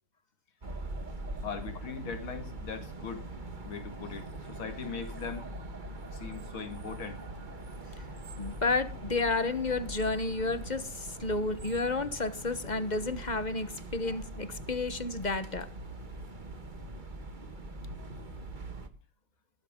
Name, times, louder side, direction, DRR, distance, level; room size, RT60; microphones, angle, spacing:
sound 1, 0.6-18.9, right 2 dB, 25° right, 1.5 m, -42 dB
voice 1, 1.4-3.2 3.6-5.5 6.1-7.2, left 6 dB, 85° left, 3.0 m, -40 dB
voice 2, 8.4-15.7, left 3 dB, 30° left, 0.9 m, -31 dB
18.0 x 13.0 x 3.7 m
omnidirectional pair, 2.2 m